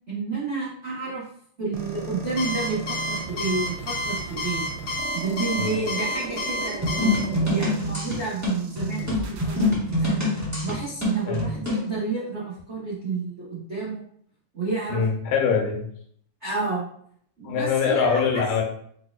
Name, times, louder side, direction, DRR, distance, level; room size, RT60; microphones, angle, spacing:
voice 1, 0.1-1.2 1.6-4.6 5.1-7.2 7.5-10.2 10.6-14.0 14.5-15.0 16.4-16.8 17.4-18.2, right 4 dB, 70° right, -10 dB, 0.6 m, -30 dB
sound 1, 1.7-9.7, right 5 dB, 85° right, 1.2 m, -37 dB
Alarm, 2.4-7.2, left 1 dB, 65° left, 1.0 m, -29 dB
sound 2, 6.8-11.9, left 1 dB, 20° right, 0.4 m, -25 dB
voice 2, 14.9-15.9 17.4-18.6, left 6 dB, 85° left, 1 dB, 2.3 m, -23 dB
4.8 x 4.3 x 2.3 m, 0.63 s
omnidirectional pair, 3.5 m